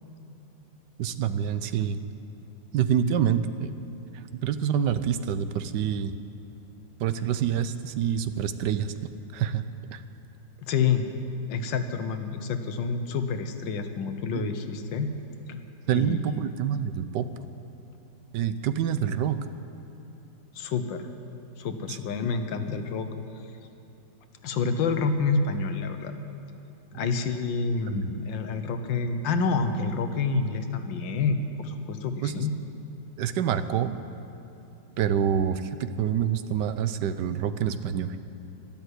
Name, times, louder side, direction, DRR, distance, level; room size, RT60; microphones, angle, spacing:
voice 1, 1.0-2.0 2.7-3.7 4.4-6.1 7.0-8.9 9.3-9.6 9.9-10.0 14.3-14.5 15.9-17.3 18.3-19.4 21.9-22.2 27.9-28.2 32.2-32.4 33.2-34.0 35.0-38.2, right 8 dB, 70° right, 11 dB, 1.2 m, -27 dB
voice 2, 10.7-11.0 11.5-15.1 15.5-15.6 15.9-16.6 20.5-21.1 21.6-23.1 24.4-26.1 26.9-32.5, left 4 dB, 80° left, 8 dB, 1.6 m, -28 dB
12.5 x 12.0 x 8.1 m, 3.0 s
omnidirectional pair, 2.0 m